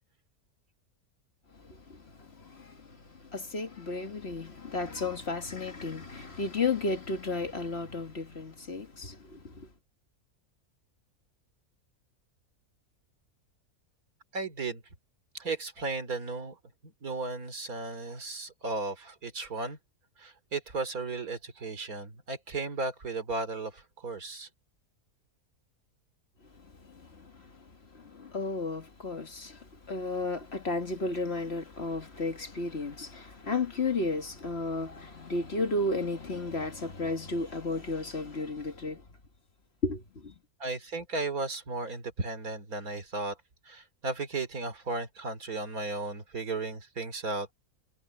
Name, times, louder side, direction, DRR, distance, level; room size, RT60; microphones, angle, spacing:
voice 1, 1.5-9.7 26.5-39.0 39.8-40.3, left 3 dB, 45° left, 1.9 m, -34 dB
voice 2, 14.3-14.8 15.3-16.6 16.8-19.8 20.2-24.5 40.6-43.4 43.6-47.5, right 3 dB, 75° right, 3.3 m, -35 dB
omnidirectional pair, 1.6 m